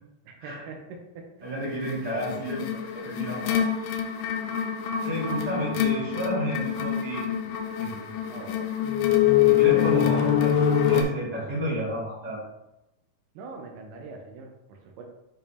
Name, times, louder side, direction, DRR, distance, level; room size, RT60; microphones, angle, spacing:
voice 1, 0.3-0.8 1.2-1.5 8.3-8.7 9.9-10.2 13.4-15.0, right 4 dB, 85° right, 1 dB, 3.4 m, -43 dB
voice 2, 1.4-3.6 5.0-7.2 7.8-8.0 9.5-10.5 10.8-12.4, right 1 dB, 50° right, -9 dB, 1.1 m, -31 dB
sound 1, 1.9-11.0, left 10 dB, 90° left, 3.5 m, -25 dB
10.5 x 3.4 x 2.9 m, 0.91 s
omnidirectional pair, 5.9 m